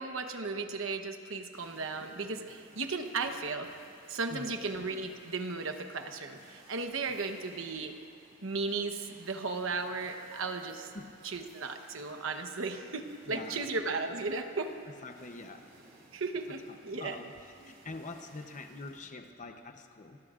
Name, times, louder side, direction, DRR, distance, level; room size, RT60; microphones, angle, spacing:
voice 1, 0.0-3.7 4.1-7.9 8.4-10.9 11.2-14.7 16.1-17.2, right 3 dB, 65° right, 6 dB, 1.0 m, -35 dB
sound 1, 1.5-19.0, right 2 dB, 50° right, 3.8 m, -58 dB
voice 2, 13.3-13.7 14.9-15.7 16.5-20.2, left 3 dB, 35° left, 6 dB, 0.8 m, -45 dB
27.5 x 20.0 x 2.5 m, 2.4 s
head